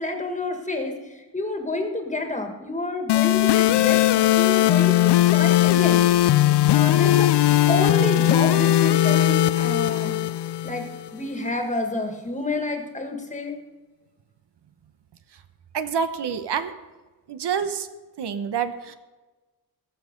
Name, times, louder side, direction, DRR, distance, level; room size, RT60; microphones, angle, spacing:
voice 1, 0.0-6.0 6.7-7.3 7.7-10.2 10.6-10.9 11.1-13.6, left 2 dB, 20° left, 4 dB, 1.6 m, -29 dB
sound 1, 3.1-11.1, left 13 dB, 90° left, 0.5 m, -19 dB
voice 2, 15.7-16.7 17.3-17.9 18.2-18.9, right 7 dB, 85° right, 10 dB, 1.0 m, -27 dB
19.5 x 7.4 x 5.2 m, 1.2 s
wide cardioid pair, 165°, 40 cm